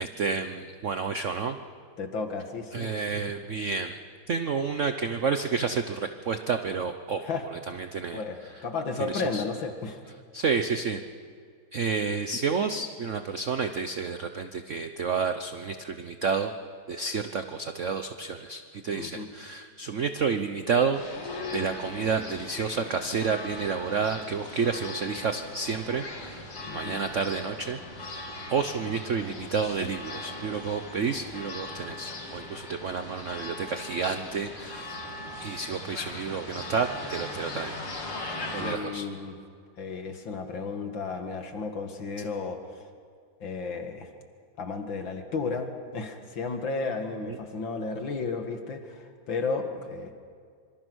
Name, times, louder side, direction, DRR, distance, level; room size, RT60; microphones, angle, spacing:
voice 1, 0.0-1.6 2.7-4.0 4.3-7.3 7.7-8.2 9.1-9.4 10.3-11.0 11.7-16.5 16.9-21.0 21.5-26.5 26.7-28.1 28.5-34.9 35.4-37.8 38.5-39.1 47.2-47.4, right 5 dB, 55° right, 8 dB, 0.8 m, -30 dB
voice 2, 2.0-3.2 7.2-7.5 8.1-10.0 18.9-19.3 26.7-27.0 38.6-39.4 39.8-42.8 43.4-44.1 44.6-50.1, left 4 dB, 60° left, 5 dB, 2.6 m, -33 dB
sound 1, 20.9-38.7, left 2 dB, 80° left, 4.2 m, -39 dB
26.0 x 25.5 x 6.4 m, 2.1 s
omnidirectional pair, 2.4 m